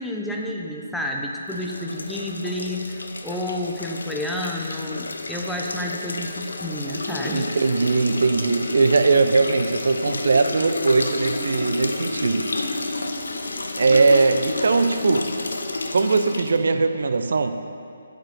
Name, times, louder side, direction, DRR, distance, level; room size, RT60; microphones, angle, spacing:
voice 1, 0.0-7.5, left 1 dB, ahead, -2 dB, 0.9 m, -30 dB
sound 1, 1.5-16.6, left 2 dB, 70° left, 1.0 m, -30 dB
voice 2, 7.2-12.8 13.8-15.3 15.9-17.6, right 3 dB, 60° right, 9 dB, 0.7 m, -20 dB
8.9 x 8.3 x 7.0 m, 2.4 s
figure-of-eight pair, 140°, 0 cm